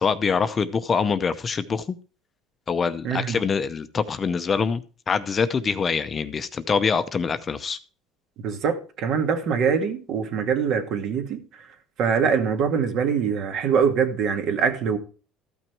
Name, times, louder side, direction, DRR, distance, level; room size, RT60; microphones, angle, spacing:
voice 1, 0.0-1.9 2.7-4.8 5.1-7.8, left 5 dB, 25° left, 0.7 m, -24 dB
voice 2, 3.0-3.4 8.4-11.4 12.0-15.0, right 6 dB, 50° right, 2.0 m, -23 dB
13.5 x 6.0 x 4.6 m
cardioid pair, 135°, 0 cm